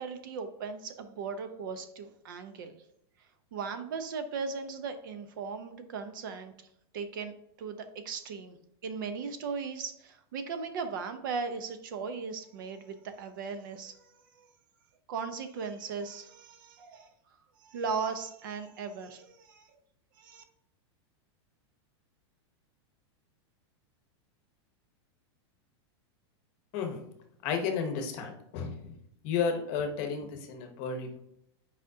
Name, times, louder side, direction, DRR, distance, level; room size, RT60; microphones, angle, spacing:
voice 1, 0.0-2.8 3.5-6.5 6.9-8.6 8.8-14.5 15.1-17.1 17.6-19.7 20.2-20.4, right 5 dB, 50° right, 9 dB, 0.7 m, -38 dB
voice 2, 26.7-27.0 27.4-28.9 29.2-31.2, left 6 dB, 30° left, 4 dB, 0.9 m, -32 dB
9.0 x 5.0 x 2.7 m, 0.77 s
supercardioid pair, 180°, 14 cm